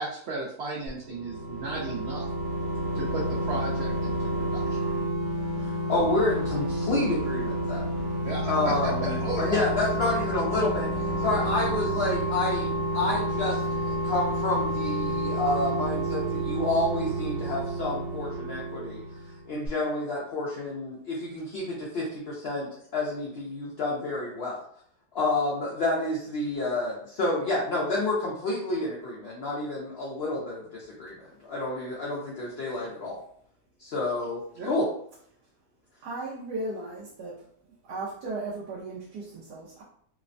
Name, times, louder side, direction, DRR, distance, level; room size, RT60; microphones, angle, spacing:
voice 1, 0.0-2.2 2.9-4.6 8.2-8.7 9.0-9.6 34.6-34.7, right 2 dB, 70° right, -4 dB, 0.6 m, -34 dB
sound 1, 1.0-19.4 19.7-19.8, right 1 dB, 55° right, 1.0 m, -30 dB
voice 2, 5.6-7.8 8.5-19.0 19.5-24.6 25.1-33.2 33.8-34.9, left 2 dB, 70° left, -4 dB, 0.5 m, -29 dB
voice 3, 36.0-37.4 37.8-39.8, right 2 dB, 90° right, -5 dB, 1.2 m, -36 dB
3.2 x 2.1 x 2.5 m, 0.64 s
omnidirectional pair, 1.7 m